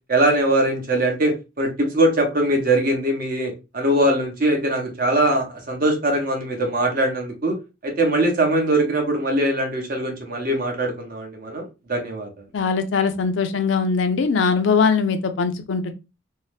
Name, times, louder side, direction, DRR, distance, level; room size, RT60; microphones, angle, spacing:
voice 1, 0.1-7.6 7.8-12.3, right 1 dB, 45° right, 2 dB, 0.8 m, -21 dB
voice 2, 12.5-15.9, left 5 dB, 65° left, 8 dB, 0.4 m, -21 dB
2.7 x 2.1 x 3.2 m, 0.27 s
head